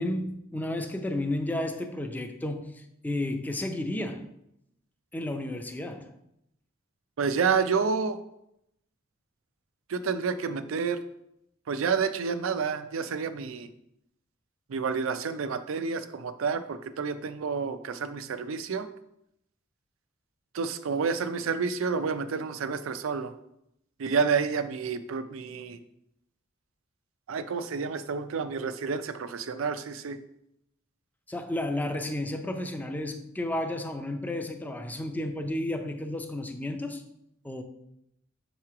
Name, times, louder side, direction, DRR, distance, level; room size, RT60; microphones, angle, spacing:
voice 1, 0.0-4.3 5.1-6.1 31.3-37.0 37.4-37.6, left 1 dB, 10° left, 0.4 m, -32 dB
voice 2, 7.2-8.2 9.9-11.0 11.7-13.7 14.7-18.9 20.5-23.3 24.0-25.8 27.3-30.2, right 5 dB, 80° right, 0.4 m, -29 dB
6.5 x 3.1 x 4.7 m
head